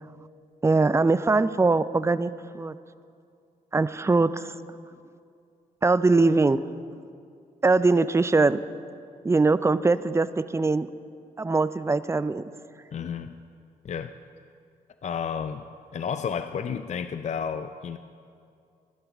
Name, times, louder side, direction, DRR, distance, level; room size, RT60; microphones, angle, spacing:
voice 1, 0.6-2.8 3.7-4.5 5.8-6.7 7.6-8.7 9.2-10.3 10.5-10.9 11.4-12.4, right 3 dB, 15° right, 15 dB, 0.4 m, -22 dB
voice 2, 12.9-13.3 13.8-14.1 15.0-15.7 15.9-18.0, left 7 dB, 45° left, 10 dB, 0.4 m, -31 dB
15.5 x 11.5 x 3.5 m, 2.4 s
supercardioid pair, 55°, 16 cm